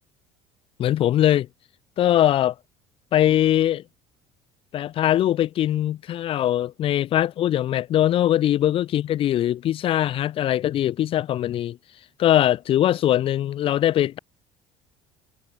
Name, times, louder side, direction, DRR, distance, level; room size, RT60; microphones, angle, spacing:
voice 1, 0.8-1.5 2.0-2.6 3.1-3.8 4.7-11.8 12.2-14.2, left 12 dB, 45° left, 1.9 m, -21 dB
cardioid pair, 145°, 13 cm